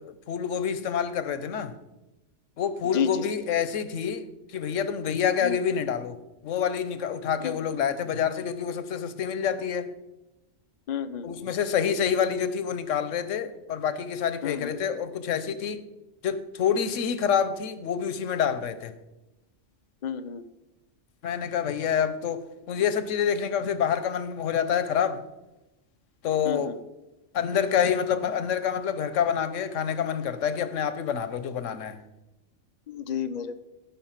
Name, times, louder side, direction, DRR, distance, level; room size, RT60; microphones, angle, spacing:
voice 1, 0.0-1.7 2.6-4.3 4.5-6.2 6.4-9.9 11.2-15.8 16.2-18.9 21.2-22.4 22.7-25.2 26.2-26.8 27.3-32.0, left 8 dB, 90° left, 1.1 m, -27 dB
voice 2, 2.9-3.3 5.4-5.6 7.4-7.6 10.9-11.3 14.4-14.7 20.0-20.4 26.4-26.8 32.9-33.6, left 7 dB, 45° left, 0.7 m, -31 dB
15.0 x 5.6 x 5.7 m
omnidirectional pair, 1.3 m